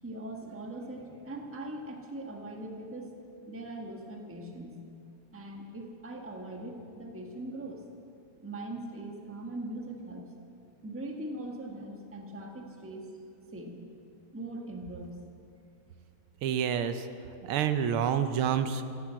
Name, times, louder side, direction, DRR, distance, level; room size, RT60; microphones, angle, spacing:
voice 1, 0.0-3.1 3.5-4.8 5.3-7.8 8.4-10.3 10.8-13.1 13.5-13.8 14.3-15.1, right 1 dB, 5° right, 2 dB, 1.1 m, -41 dB
voice 2, 16.4-17.1 17.4-18.8, right 8 dB, 80° right, 10 dB, 1.6 m, -28 dB
15.5 x 12.5 x 7.6 m, 2.5 s
omnidirectional pair, 2.4 m